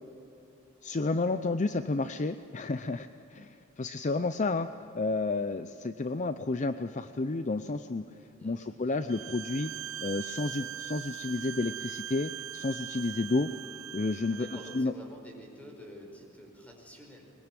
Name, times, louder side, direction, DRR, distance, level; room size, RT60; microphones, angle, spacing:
voice 1, 0.8-4.7 4.9-8.0 8.4-9.7 10.0-13.5 13.9-14.5 14.7-14.9, left 3 dB, 35° left, 10 dB, 0.5 m, -31 dB
voice 2, 8.4-9.1 14.3-17.2, equal, 5° left, 1 dB, 4.8 m, -49 dB
Bowed string instrument, 9.1-14.9, right 10 dB, 90° right, 0.5 m, -41 dB
21.5 x 21.0 x 9.1 m, 2.7 s
head